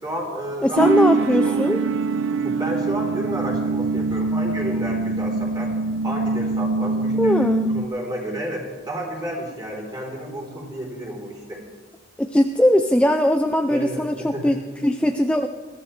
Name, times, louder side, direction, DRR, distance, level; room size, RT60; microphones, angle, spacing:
voice 1, 0.0-0.9 1.2-1.9 2.4-5.7 6.0-11.6 13.7-14.5, right 1 dB, 20° right, -1 dB, 3.7 m, -31 dB
voice 2, 0.6-1.8 7.2-7.7 12.2-15.5, left 1 dB, 5° left, 5 dB, 0.4 m, -20 dB
sound 1, 0.8-7.9, right 4 dB, 85° right, 0.5 m, -23 dB
21.5 x 14.5 x 3.3 m, 1.4 s
head